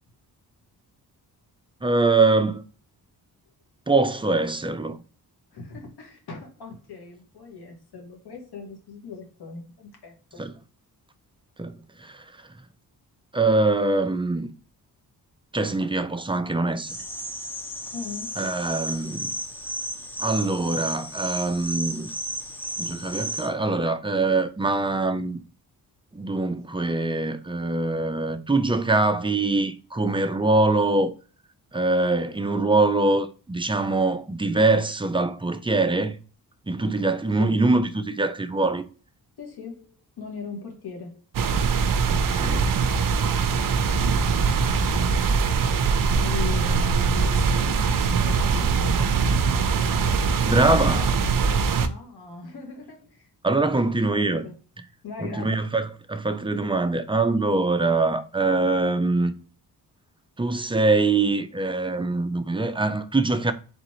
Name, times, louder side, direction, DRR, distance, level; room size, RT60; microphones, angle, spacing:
voice 1, 1.8-2.6 3.9-5.0 10.4-10.5 11.6-11.7 12.0-12.2 13.3-14.5 15.5-16.9 18.4-19.4 20.2-22.1 22.8-25.4 26.1-31.1 31.7-36.2 36.7-38.9 42.1-42.7 50.4-51.2 53.4-54.5 55.2-59.3 60.4-63.5, right 3 dB, 15° right, 0.5 m, -23 dB
voice 2, 5.5-10.4 17.9-18.4 37.4-37.6 39.4-41.2 46.2-48.8 51.8-53.3 53.8-54.6 55.0-55.6, left 4 dB, 80° left, 1.8 m, -39 dB
sound 1, 16.9-23.5, right 1 dB, 5° left, 0.9 m, -33 dB
sound 2, 41.3-51.9, right 5 dB, 60° right, 0.6 m, -22 dB
4.0 x 4.0 x 2.9 m
wide cardioid pair, 110°, 38 cm